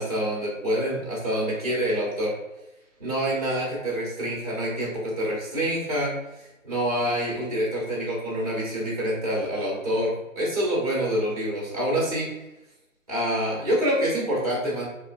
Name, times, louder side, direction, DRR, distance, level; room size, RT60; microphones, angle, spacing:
voice 1, 0.0-2.3 3.0-6.1 6.6-12.3 13.1-14.9, equal, 30° right, -4 dB, 0.7 m, -26 dB
2.8 x 2.5 x 2.2 m, 0.97 s
figure-of-eight pair, 170°, 40 cm